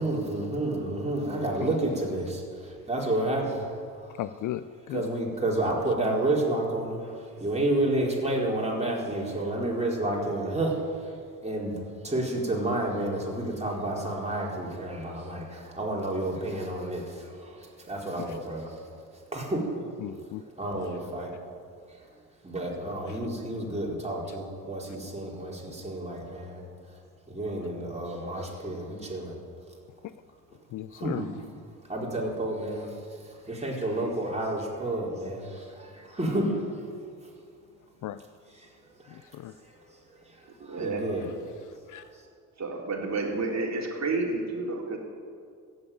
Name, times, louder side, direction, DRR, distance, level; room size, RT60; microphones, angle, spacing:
voice 1, 0.0-3.7 4.0-4.2 4.9-11.2 11.4-18.8 19.3-19.7 20.6-21.3 22.4-26.6 27.3-29.4 30.9-31.3 31.9-36.6 39.0-39.2 39.6-39.7 40.6-41.3 42.0-42.1, right 1 dB, 15° right, -2 dB, 4.5 m, -30 dB
voice 2, 4.1-5.1 18.2-18.4 20.0-20.4 22.9-23.2 30.0-30.1 30.7-31.2 38.0-38.2 39.1-39.6 41.2-41.3 41.7-42.1, left 13 dB, 45° left, 14 dB, 0.5 m, -37 dB
voice 3, 40.7-41.0 42.6-45.0, right 3 dB, 35° right, 0 dB, 3.6 m, -30 dB
15.0 x 8.1 x 9.1 m, 2.2 s
hypercardioid pair, 55°, 45 cm